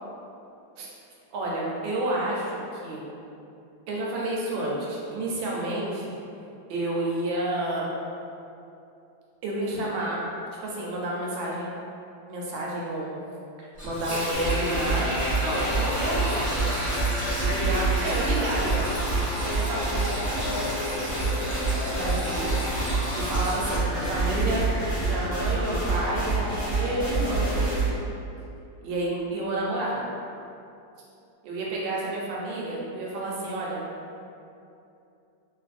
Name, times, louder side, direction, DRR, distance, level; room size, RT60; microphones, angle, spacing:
voice 1, 1.3-3.0 3.9-6.1 6.7-7.9 9.4-10.2 10.6-11.7 12.3-13.1 13.6-15.1 15.4-16.7 17.4-18.8 19.4-20.2 21.8-22.5 22.8-24.6 25.0-27.4 28.8-30.0 31.4-33.8, right 1 dB, 85° right, -4 dB, 1.3 m, -30 dB
Sink (filling or washing), 13.8-23.8, equal, 40° right, 0.7 m, -34 dB
sound 1, 14.3-27.9, right 2 dB, 85° left, 0.5 m, -27 dB
2.9 x 2.5 x 2.4 m, 2.7 s
omnidirectional pair, 2.1 m